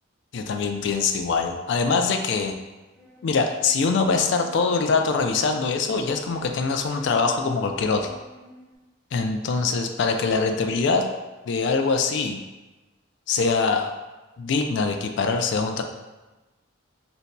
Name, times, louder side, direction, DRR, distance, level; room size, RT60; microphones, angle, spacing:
voice 1, 0.3-2.5 3.2-8.1 9.1-11.0 11.5-12.4 13.3-13.9 14.4-15.8, left 4 dB, 65° left, 6 dB, 0.3 m, -23 dB
sound 1, 2.9-8.8, left 1 dB, 5° left, 0.5 m, -49 dB
2.5 x 2.2 x 4.0 m, 1.1 s
head